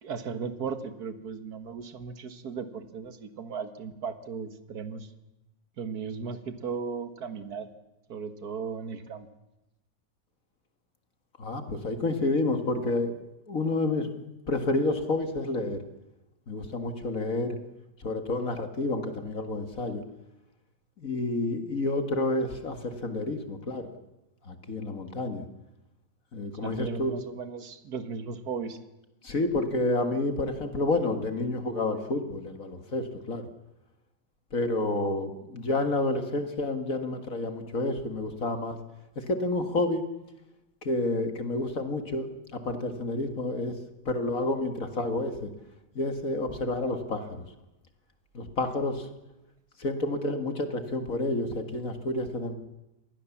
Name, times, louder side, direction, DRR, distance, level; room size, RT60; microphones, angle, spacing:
voice 1, 0.0-5.1 5.8-7.7 8.1-9.3 26.6-28.8, right 5 dB, 55° right, 11 dB, 2.0 m, -36 dB
voice 2, 11.4-13.1 13.5-14.1 14.5-15.8 16.5-17.6 18.0-20.0 21.0-23.9 24.5-25.4 26.3-27.1 29.2-33.4 34.5-38.8 39.2-40.0 40.8-43.8 44.1-45.5 46.0-47.5 48.3-49.1 49.8-52.5, left 2 dB, 45° left, 8 dB, 2.0 m, -29 dB
26.5 x 20.0 x 7.2 m, 0.95 s
omnidirectional pair, 2.0 m